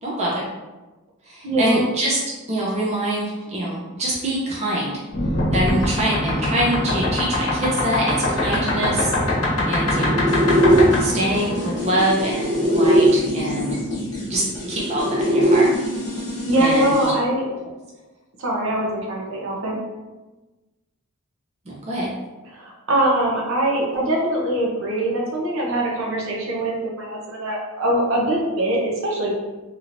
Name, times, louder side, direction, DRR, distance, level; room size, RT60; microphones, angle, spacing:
voice 1, 0.0-0.5 1.3-2.2 2.5-5.0 5.5-9.3 9.7-10.2 11.0-13.8 14.3-15.7 16.6-17.1 21.7-22.1, right 1 dB, 30° right, -5 dB, 0.5 m, -24 dB
voice 2, 1.4-1.8 16.1-17.5 18.4-19.8 22.5-29.3, right 1 dB, 65° right, -2 dB, 0.8 m, -23 dB
sound 1, 5.1-13.0 14.3-15.6, left 1 dB, 80° left, 0.9 m, -21 dB
sound 2, 10.3-17.1, left 2 dB, 20° left, 1.0 m, -30 dB
2.9 x 2.9 x 2.5 m, 1.2 s
head